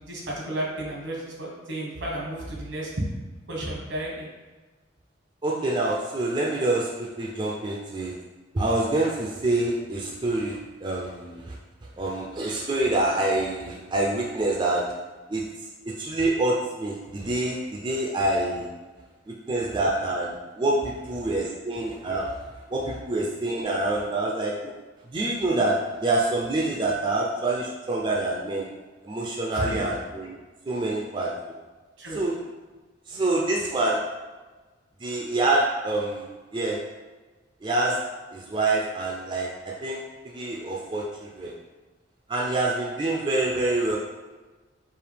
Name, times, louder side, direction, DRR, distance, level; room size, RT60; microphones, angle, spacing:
voice 1, 0.1-2.9 3.5-4.3 29.5-29.8 32.0-32.2, right 1 dB, 80° right, -2 dB, 1.2 m, -32 dB
voice 2, 5.4-8.1 8.5-11.6 12.0-14.9 15.3-15.4 15.9-18.7 19.3-22.3 22.7-24.7 25.1-28.7 29.0-30.4 30.7-31.3 32.1-32.4 33.1-34.0 35.0-36.8 37.6-38.0 38.3-41.5 42.3-44.0, right 2 dB, 25° right, -2 dB, 0.4 m, -26 dB
4.8 x 2.7 x 3.3 m, 1.2 s
head